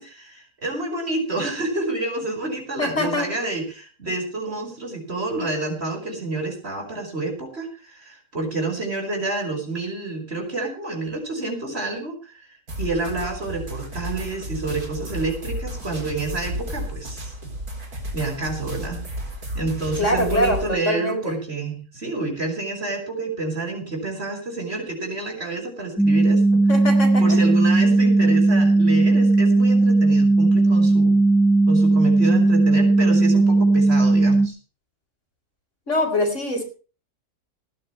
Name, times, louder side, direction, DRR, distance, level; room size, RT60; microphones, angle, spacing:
voice 1, 0.0-12.5 12.8-17.3 18.1-19.0 19.5-26.6 27.2-31.1 31.7-34.6, right 3 dB, 40° right, 2 dB, 5.8 m, -29 dB
voice 2, 2.8-3.3 20.0-21.3 26.7-27.4 28.2-28.3 35.9-36.6, left 1 dB, 50° left, 4 dB, 4.8 m, -24 dB
sound 1, 12.7-20.7, equal, 75° right, 4.4 m, -33 dB
sound 2, 26.0-34.5, right 2 dB, ahead, 1.3 m, -17 dB
19.0 x 13.5 x 3.2 m, 0.36 s
omnidirectional pair, 1.6 m